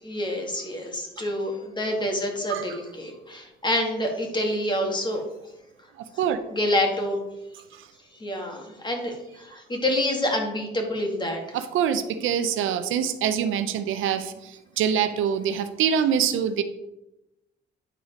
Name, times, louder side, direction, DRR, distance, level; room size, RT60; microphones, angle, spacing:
voice 1, 0.0-5.2 6.5-7.2 8.2-11.4, left 1 dB, 20° left, 2 dB, 2.1 m, -27 dB
voice 2, 11.5-14.3 14.8-16.6, right 8 dB, 85° right, 10 dB, 0.7 m, -24 dB
9.8 x 4.1 x 5.1 m, 0.93 s
cardioid pair, 90°, 20 cm